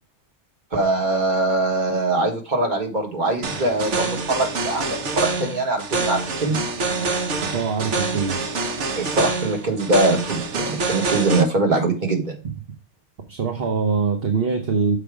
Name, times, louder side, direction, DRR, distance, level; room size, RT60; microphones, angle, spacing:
voice 1, 0.7-6.6 8.9-12.4, right 2 dB, 40° right, 2 dB, 1.7 m, -22 dB
sound 1, 3.4-11.4, right 3 dB, 75° right, 1.3 m, -26 dB
voice 2, 7.5-8.5 13.3-15.0, right 5 dB, 55° right, 4 dB, 1.2 m, -23 dB
6.8 x 5.1 x 4.8 m, 0.34 s
omnidirectional pair, 1.2 m